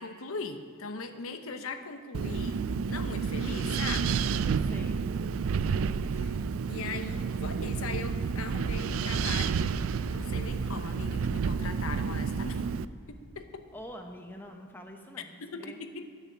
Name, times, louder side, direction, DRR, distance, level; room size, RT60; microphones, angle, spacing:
voice 1, 0.0-4.2 6.1-6.4 6.7-9.6 10.1-12.6 13.1-13.6 15.4-16.0, left 4 dB, 75° left, 8 dB, 0.9 m, -39 dB
Wind, 2.1-12.9, right 5 dB, 70° right, 0.4 m, -30 dB
voice 2, 4.4-5.1 13.7-15.8, equal, 10° left, 3 dB, 1.0 m, -45 dB
sound 1, 12.8-13.0, right 1 dB, 30° right, 1.3 m, -46 dB
15.5 x 6.7 x 8.5 m, 2.2 s
head